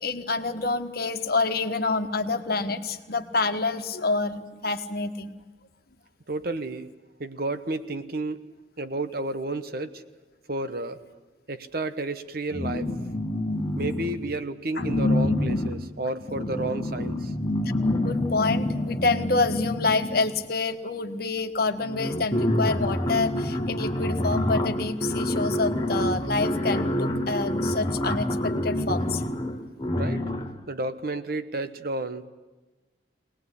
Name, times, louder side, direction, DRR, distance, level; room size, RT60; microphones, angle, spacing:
voice 1, 0.0-5.3 14.8-14.9 18.0-29.2, left 3 dB, 55° left, 7 dB, 1.4 m, -27 dB
voice 2, 6.3-6.9 7.2-8.4 8.8-10.0 10.5-11.0 11.5-12.9 13.8-17.3 29.9-30.2 30.7-32.3, right 2 dB, 55° right, 10 dB, 1.2 m, -31 dB
sound 1, 12.5-14.3 14.8-20.4 21.4-21.5 21.7-30.6, left 1 dB, 25° left, 1.4 m, -27 dB
23.0 x 19.5 x 9.9 m, 1.2 s
head